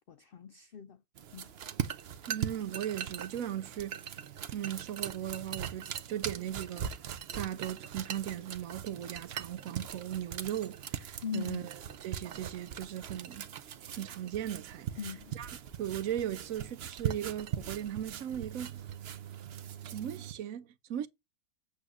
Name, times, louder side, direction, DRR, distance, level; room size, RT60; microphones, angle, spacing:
voice 1, 0.1-1.0 1.3-1.5 11.2-11.7 15.0-15.3, left 7 dB, 70° left, 0.5 m, -40 dB
sound 1, 1.2-20.3, right 9 dB, 55° right, 0.8 m, -40 dB
voice 2, 2.3-4.0 4.5-6.9 7.3-11.7 12.0-13.5 13.9-14.9 15.3-15.5 15.8-18.8 19.8-21.1, right 11 dB, 75° right, 1.0 m, -37 dB
8.3 x 3.4 x 6.4 m
omnidirectional pair, 1.5 m